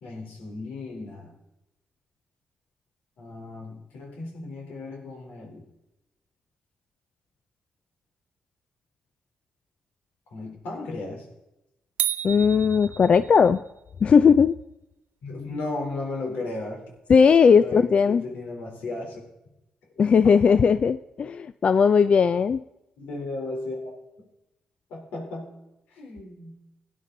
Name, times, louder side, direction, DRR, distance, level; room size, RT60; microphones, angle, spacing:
voice 1, 0.0-1.3 3.2-5.7 10.3-11.3 15.2-16.9 17.6-19.2 20.0-20.1 23.0-23.9 24.9-25.5 25.9-26.6, left 2 dB, 90° left, 1 dB, 3.6 m, -35 dB
sound 1, 12.0-13.6, right 11 dB, 85° right, 0.6 m, -31 dB
voice 2, 12.2-13.6 14.0-14.6 17.1-18.2 20.0-22.6, left 6 dB, 50° left, 13 dB, 0.4 m, -18 dB
17.0 x 10.0 x 3.9 m, 0.91 s
cardioid pair, 80°, 3 cm